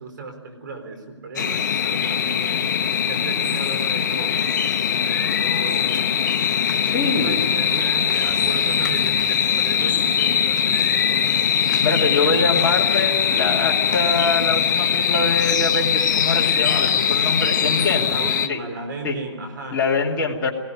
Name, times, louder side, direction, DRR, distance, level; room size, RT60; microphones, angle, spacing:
voice 1, 0.0-2.7 3.1-6.3 6.9-11.6 18.0-19.8, right 4 dB, 45° right, 6 dB, 4.1 m, -35 dB
sound 1, 1.4-18.5, left 8 dB, 40° left, 0.8 m, -21 dB
voice 2, 6.8-7.4 11.8-18.1 18.5-18.6 19.0-19.2 19.7-20.5, left 4 dB, 15° left, -3 dB, 2.5 m, -24 dB
sound 2, 6.9-11.2, equal, 75° right, 5.4 m, -43 dB
Bowed string instrument, 12.1-16.4, left 3 dB, 70° left, 1.8 m, -38 dB
20.5 x 16.5 x 9.7 m, 1.3 s
hypercardioid pair, 165°, 15 cm